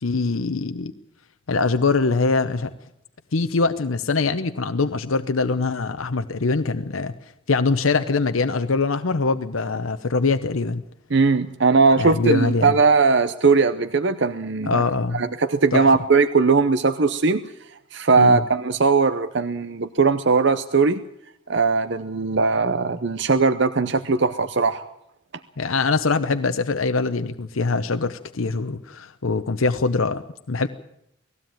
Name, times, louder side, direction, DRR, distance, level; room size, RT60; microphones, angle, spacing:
voice 1, 0.0-0.9 1.5-2.7 3.3-10.8 11.9-12.8 14.6-15.2 15.7-15.9 18.2-18.4 25.6-30.7, left 4 dB, 75° left, 9 dB, 0.8 m, -23 dB
voice 2, 11.1-14.8 15.1-17.4 17.9-21.0 21.5-24.8, right 4 dB, 55° right, 11 dB, 0.7 m, -19 dB
19.0 x 15.5 x 9.0 m, 0.75 s
head